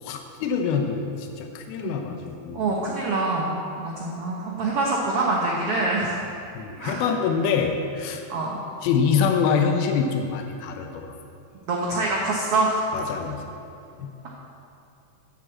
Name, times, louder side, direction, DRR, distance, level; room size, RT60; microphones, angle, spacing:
voice 1, 0.0-2.7 6.6-8.2 8.8-11.2 12.9-13.4 14.0-14.1, left 6 dB, 90° left, 4 dB, 2.7 m, -25 dB
voice 2, 2.5-3.5 3.8-6.2 6.8-7.0 8.3-8.6 11.7-12.8, right 2 dB, 80° right, -3 dB, 1.3 m, -25 dB
9.8 x 7.1 x 7.4 m, 2.7 s
omnidirectional pair, 4.2 m